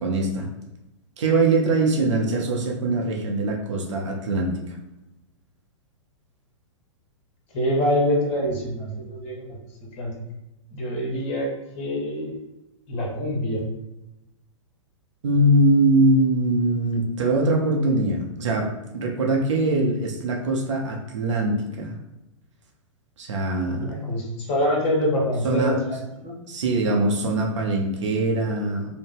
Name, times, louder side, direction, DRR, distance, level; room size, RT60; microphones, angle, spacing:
voice 1, 0.0-0.5 1.2-4.6 15.2-21.9 23.2-24.1 25.4-25.8 26.5-29.0, right 2 dB, 65° right, 0 dB, 0.7 m, -22 dB
voice 2, 7.5-9.6 9.9-10.1 10.7-12.4 12.9-13.6 23.8-26.4, equal, 35° left, -2 dB, 1.0 m, -25 dB
2.7 x 2.1 x 3.7 m, 0.96 s
figure-of-eight pair, 110°, 17 cm